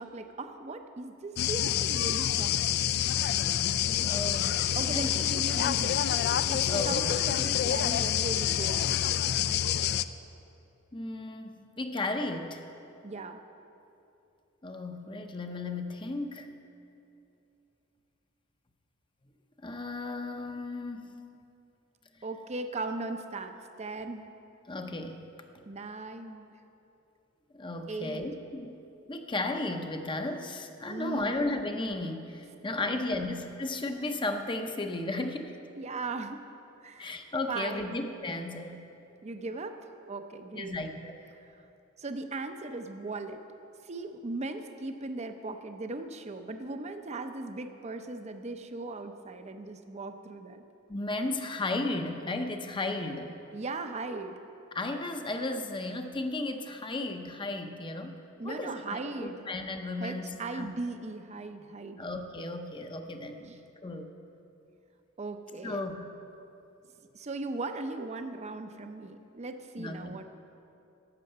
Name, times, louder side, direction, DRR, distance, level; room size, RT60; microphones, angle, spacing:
voice 1, 0.0-2.6 4.8-6.1 6.5-8.9 13.0-13.4 22.2-24.3 25.7-26.5 27.9-28.2 30.9-31.5 32.8-33.2 35.2-35.3 35.8-36.4 36.8-37.1 37.5-38.0 39.2-39.8 40.0-40.8 41.4-41.5 42.0-43.4 43.8-50.6 53.5-54.4 58.4-59.5 60.0-62.0 63.4-63.6 65.2-65.8 67.1-70.2, right 3 dB, 30° right, 7 dB, 0.6 m, -38 dB
sound 1, 1.4-10.0, left 10 dB, 50° left, 0.3 m, -27 dB
voice 2, 4.0-5.1 6.7-7.2 10.9-12.6 14.6-16.5 19.6-21.2 24.7-25.3 27.5-28.8 29.1-35.5 37.0-38.8 40.5-41.2 50.9-53.4 54.7-58.2 58.4-60.7 62.0-63.6 63.8-64.1 65.6-66.1 69.8-70.2, left 2 dB, 25° left, 6 dB, 0.7 m, -34 dB
12.0 x 8.2 x 6.7 m, 2.9 s
head